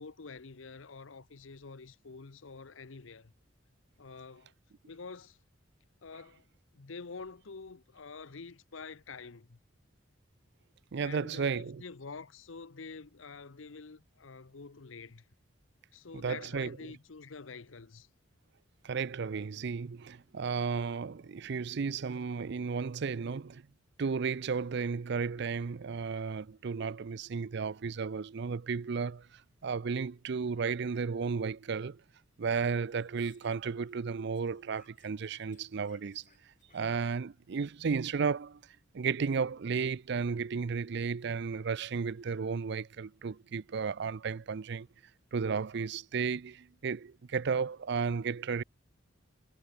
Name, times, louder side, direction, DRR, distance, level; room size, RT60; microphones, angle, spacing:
voice 1, 0.0-3.3 4.0-4.5 4.9-5.4 6.0-6.4 6.7-9.6 11.0-15.2 15.9-18.1, left 4 dB, 85° left, 0.9 m, -47 dB
voice 2, 10.9-11.8 16.1-16.9 18.8-23.6 24.0-32.0 32.4-36.2 36.7-38.6 38.9-44.9 45.3-48.6, right 5 dB, 60° right, 0.5 m, -33 dB
Speech, 32.4-34.1 34.3-37.5, left 6 dB, 40° left, 7.8 m, -68 dB
head